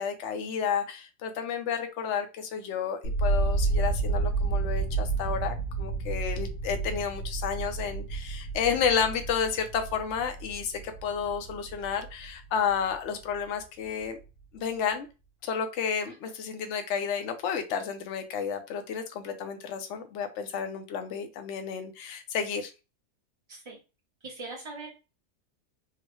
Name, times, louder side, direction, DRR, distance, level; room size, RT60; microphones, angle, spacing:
voice 1, 0.0-14.2 14.5-15.1 15.4-22.7, left 7 dB, 60° left, 7 dB, 0.8 m, -31 dB
sound 1, 3.0-13.0 13.3-14.0, right 3 dB, 85° left, 1.4 m, -31 dB
voice 2, 24.2-24.9, right 3 dB, 30° right, -4 dB, 0.6 m, -40 dB
3.8 x 2.1 x 3.0 m, 0.30 s
omnidirectional pair, 1.7 m